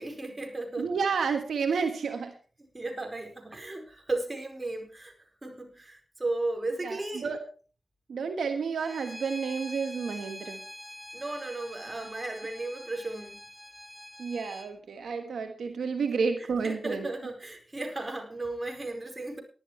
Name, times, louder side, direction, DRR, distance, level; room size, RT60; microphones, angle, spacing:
voice 1, 0.0-0.9 2.7-5.1 5.4-7.3 11.1-13.4 16.4-19.4, right 2 dB, 30° right, 3 dB, 4.8 m, -35 dB
voice 2, 0.8-2.3 6.8-7.4 8.1-10.6 14.2-17.1, right 5 dB, 90° right, 6 dB, 1.3 m, -30 dB
Bowed string instrument, 8.8-14.7, equal, 5° left, 3.1 m, -45 dB
18.5 x 12.0 x 3.2 m, 0.38 s
cardioid pair, 45°, 0 cm